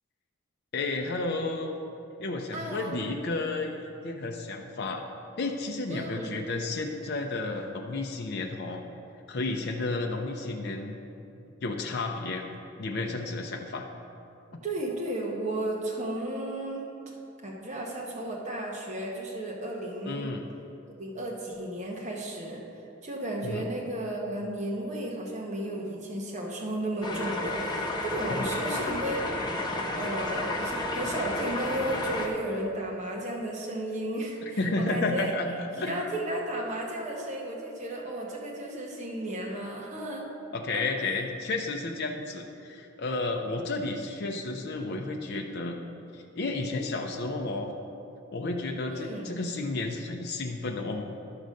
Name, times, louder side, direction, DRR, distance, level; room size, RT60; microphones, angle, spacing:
voice 1, 0.7-1.7 2.2-3.8 4.0-5.0 5.4-8.8 9.3-11.0 11.6-12.4 12.8-13.8 20.0-20.4 23.4-23.7 28.3-28.5 34.6-35.5 35.8-36.0 40.5-45.8 46.1-47.7 48.3-51.0, left 3 dB, 50° left, 1 dB, 0.5 m, -32 dB
voice 2, 2.5-3.1 5.9-6.4 14.6-17.1 17.4-20.3 21.0-22.6 23.0-29.7 29.9-35.3 35.8-40.3 40.7-40.8 48.9-49.3, right 1 dB, 35° right, -3 dB, 1.1 m, -34 dB
sound 1, 27.0-32.3, left 2 dB, 20° left, 0.8 m, -31 dB
11.5 x 3.9 x 6.4 m, 2.7 s
head